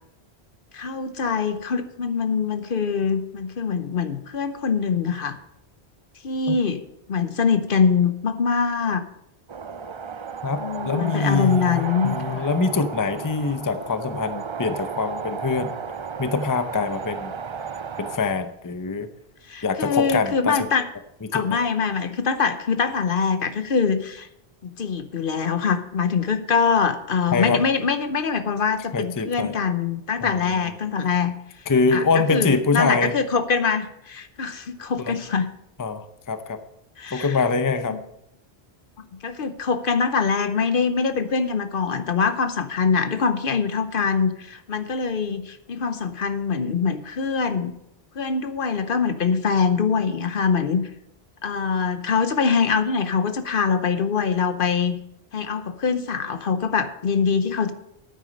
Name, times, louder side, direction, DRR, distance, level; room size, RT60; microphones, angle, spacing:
voice 1, 0.7-5.4 6.2-6.8 7.1-9.0 10.6-12.5 19.5-20.9 21.3-24.3 24.6-31.4 31.9-35.5 37.0-37.4 37.9-38.0 39.2-47.7 48.2-50.8 51.4-55.0 55.3-57.7, left 5 dB, 60° left, 11 dB, 0.9 m, -23 dB
sound 1, 9.5-18.2, right 6 dB, 40° right, 0.4 m, -34 dB
voice 2, 10.4-15.7 16.2-17.3 18.0-19.1 19.6-20.7 21.2-21.6 27.3-27.6 28.9-29.5 30.2-30.7 31.7-33.1 35.0-35.2 35.8-36.6 37.1-38.0, left 4 dB, 25° left, 10 dB, 0.6 m, -24 dB
9.2 x 9.0 x 6.5 m, 0.78 s
omnidirectional pair, 1.1 m